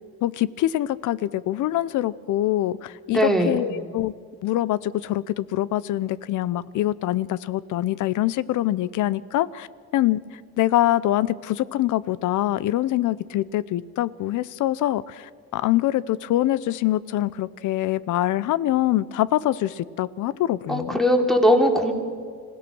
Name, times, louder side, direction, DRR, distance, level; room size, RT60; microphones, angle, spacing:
voice 1, 0.2-4.1 4.4-9.7 9.9-10.2 10.6-20.9, left 14 dB, 80° left, 19 dB, 0.7 m, -24 dB
voice 2, 3.1-3.6 20.7-21.9, equal, ahead, 3 dB, 2.9 m, -19 dB
26.5 x 16.5 x 6.1 m, 2.1 s
cardioid pair, 90°, 30 cm